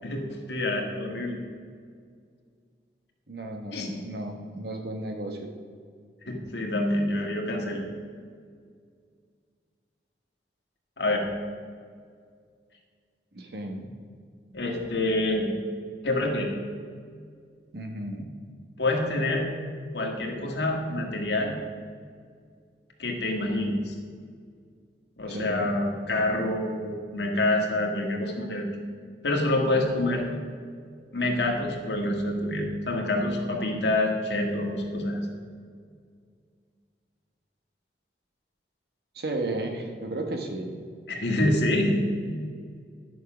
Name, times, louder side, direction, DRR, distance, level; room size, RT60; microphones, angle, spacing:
voice 1, 0.0-1.4 3.7-3.9 6.3-7.8 11.0-11.2 14.5-15.5 16.0-16.5 18.8-19.5 19.9-21.5 23.0-23.9 25.2-28.7 29.2-30.2 31.1-35.3 41.1-42.1, left 1 dB, 85° left, 1 dB, 1.8 m, -27 dB
voice 2, 3.3-5.5 13.3-13.9 17.7-18.3 25.3-25.7 39.1-40.7, right 1 dB, 65° right, 3 dB, 1.3 m, -33 dB
11.0 x 6.3 x 6.0 m, 2.1 s
head